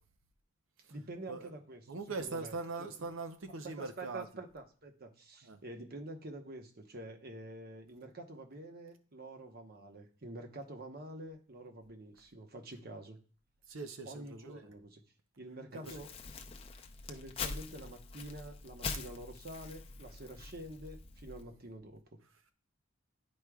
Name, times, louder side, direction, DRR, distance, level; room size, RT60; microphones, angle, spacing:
voice 1, 0.9-1.8 2.2-2.5 2.8-2.9 3.6-13.2 14.0-15.0 15.4-16.1 17.1-22.0, right 1 dB, 50° right, 1.0 m, -47 dB
voice 2, 1.9-4.3 5.4-5.6 13.7-14.7 15.7-16.0, right 3 dB, 85° right, 0.7 m, -41 dB
Crumpling crinkling, 15.8-21.4, left 4 dB, 30° left, 0.5 m, -44 dB
10.5 x 4.8 x 2.3 m
head